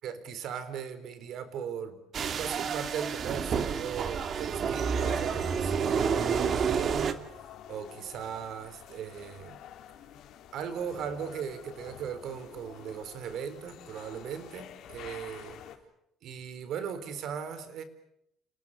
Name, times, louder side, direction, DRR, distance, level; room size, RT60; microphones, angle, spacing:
voice 1, 0.0-9.6 10.5-15.6 16.2-17.8, right 8 dB, 60° right, 12 dB, 4.3 m, -38 dB
sound 1, 2.1-7.1, right 6 dB, 45° right, 2.2 m, -29 dB
sound 2, 5.0-15.8, left 10 dB, 70° left, 4.0 m, -48 dB
30.0 x 29.0 x 6.8 m, 0.77 s
cardioid pair, 145°, 0 cm